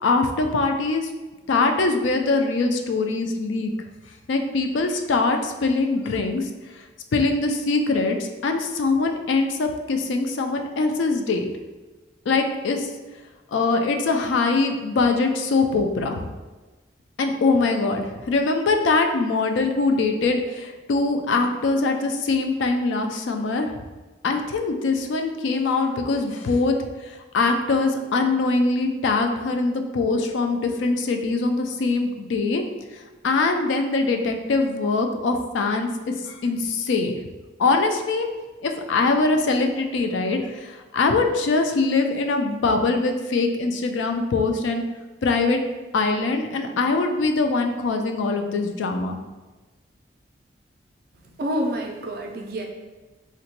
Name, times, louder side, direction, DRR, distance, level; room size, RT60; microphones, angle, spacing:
voice 1, 0.0-1.1 1.5-3.7 4.3-6.5 7.1-11.5 12.3-12.9 13.5-16.3 17.2-23.7 24.2-26.8 27.0-32.6 33.2-35.9 36.2-37.2 37.6-38.3 38.6-44.8 45.2-45.6 45.9-49.2, left 3 dB, 85° left, 5 dB, 0.4 m, -22 dB
voice 2, 51.4-52.7, equal, 50° right, 2 dB, 0.3 m, -27 dB
3.8 x 2.1 x 2.8 m, 1.2 s
head